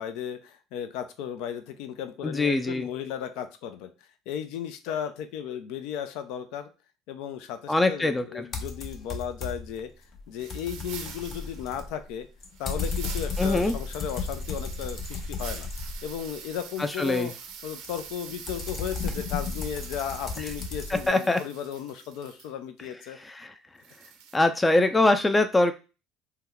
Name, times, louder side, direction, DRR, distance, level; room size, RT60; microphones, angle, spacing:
voice 1, 0.0-3.9 4.3-6.7 7.1-9.9 10.3-12.3 12.6-15.7 16.0-17.3 17.6-23.2, left 9 dB, 75° left, 9 dB, 0.5 m, -35 dB
voice 2, 2.2-2.9 7.7-8.5 13.4-13.8 16.8-17.3 20.9-21.4 23.3-23.5 24.3-25.7, left 2 dB, 15° left, 9 dB, 0.4 m, -23 dB
sound 1, 8.5-9.8 10.2-16.3 17.8-21.1, left 4 dB, 50° left, 0.7 m, -34 dB
sound 2, 10.4-11.8 12.5-22.5 23.8-24.4, right 7 dB, 70° right, 0.5 m, -44 dB
2.8 x 2.2 x 3.7 m, 0.31 s
supercardioid pair, 80°, 0 cm